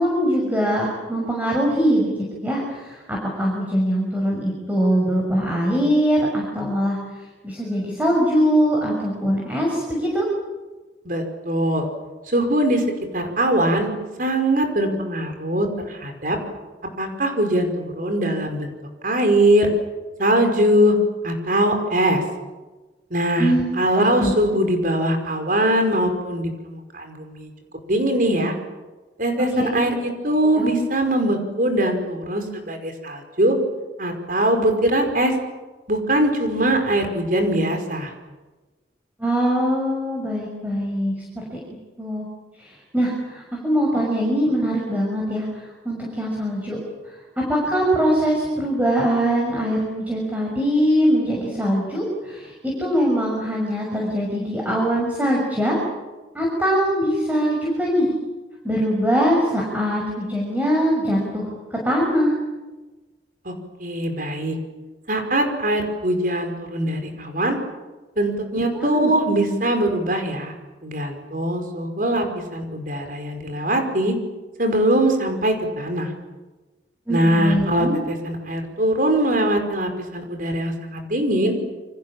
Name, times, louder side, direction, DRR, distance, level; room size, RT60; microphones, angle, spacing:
voice 1, 0.0-2.1 2.4-7.0 7.4-10.3 23.4-23.6 24.0-24.3 29.6-29.9 30.4-30.7 39.2-41.4 42.0-42.3 42.6-46.8 47.4-55.8 56.3-58.1 58.6-62.3 68.7-69.1 77.1-78.0, equal, 10° right, -2 dB, 6.2 m, -22 dB
voice 2, 11.1-11.9 12.3-12.8 13.1-13.9 14.2-16.4 17.0-18.7 19.0-19.7 20.2-21.0 21.2-22.2 23.1-27.5 27.9-28.5 29.2-33.6 34.0-35.3 35.9-38.1 63.5-63.6 63.8-64.6 65.1-67.6 68.2-70.5 70.8-72.2 72.5-74.2 74.6-76.1 77.1-81.5, right 1 dB, 50° right, 5 dB, 5.2 m, -21 dB
29.0 x 25.5 x 7.4 m, 1.2 s
head